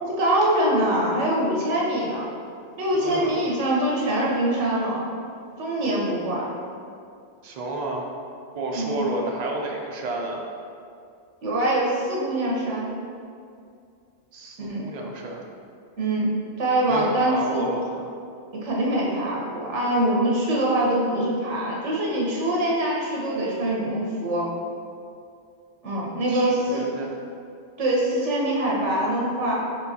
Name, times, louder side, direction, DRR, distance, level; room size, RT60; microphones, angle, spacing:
voice 1, 0.0-2.3 2.8-5.1 5.6-6.5 8.7-9.0 11.4-12.9 14.6-14.8 16.0-16.3 16.6-17.7 18.5-24.5 25.8-26.8 27.8-29.5, right 1 dB, 75° right, -4 dB, 1.2 m, -24 dB
voice 2, 2.9-3.4 7.4-8.1 8.6-10.4 14.3-15.4 16.9-18.1 26.3-27.1, right 2 dB, 60° right, 0 dB, 0.4 m, -31 dB
4.5 x 4.0 x 2.7 m, 2.4 s
omnidirectional pair, 1.2 m